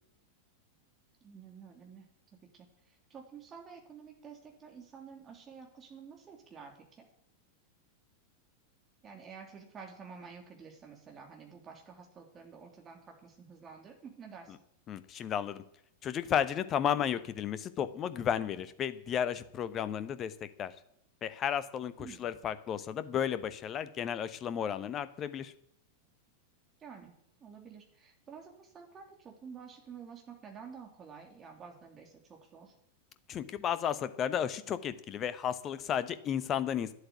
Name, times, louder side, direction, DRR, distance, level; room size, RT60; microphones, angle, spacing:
voice 1, 1.2-2.1 2.5-7.0 9.0-14.5 22.0-22.4 26.8-27.1 27.4-32.7, right 6 dB, 25° right, 2 dB, 3.3 m, -50 dB
voice 2, 14.9-15.6 16.0-20.7 21.2-25.5 33.3-36.9, left 9 dB, 30° left, 13 dB, 1.0 m, -33 dB
10.5 x 8.0 x 9.8 m, 0.72 s
figure-of-eight pair, 90°, 0 cm